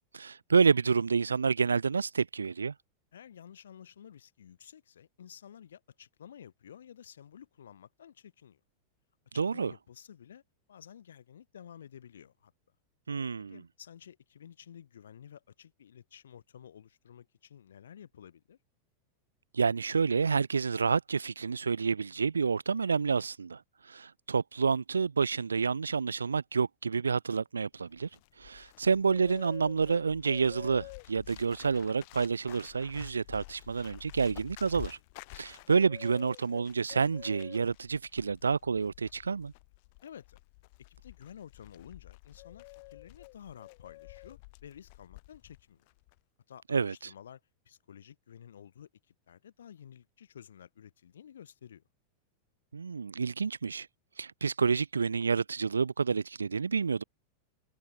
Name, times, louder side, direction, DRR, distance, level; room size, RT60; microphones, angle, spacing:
voice 1, 0.1-2.7 9.4-9.7 13.1-13.6 19.5-23.6 23.9-28.1 28.4-35.0 35.4-39.5 46.7-46.9 52.7-53.9 54.2-57.0, right 5 dB, 75° right, 0.7 m, -29 dB
voice 2, 3.1-8.6 9.3-10.4 10.7-12.5 13.4-18.6 40.0-40.4 40.9-45.9 46.5-51.8, left 9 dB, 65° left, 6.4 m, -52 dB
Bird, 27.8-45.6 45.9-46.2, left 27 dB, 50° left, 7.5 m, -50 dB
figure-of-eight pair, 90°, 0 cm